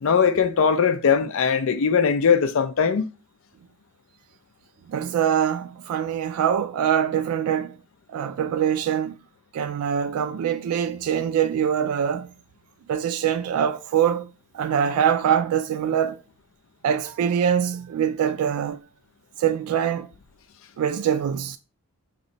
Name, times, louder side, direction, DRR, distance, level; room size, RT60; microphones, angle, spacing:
voice 1, 0.0-3.1, left 6 dB, 60° left, 0.4 m, -20 dB
voice 2, 4.9-7.8 8.1-9.2 9.5-12.3 12.9-14.3 14.5-16.2 16.8-18.8 19.4-20.1 20.8-21.6, right 8 dB, 80° right, 0.3 m, -23 dB
3.0 x 2.6 x 3.9 m
head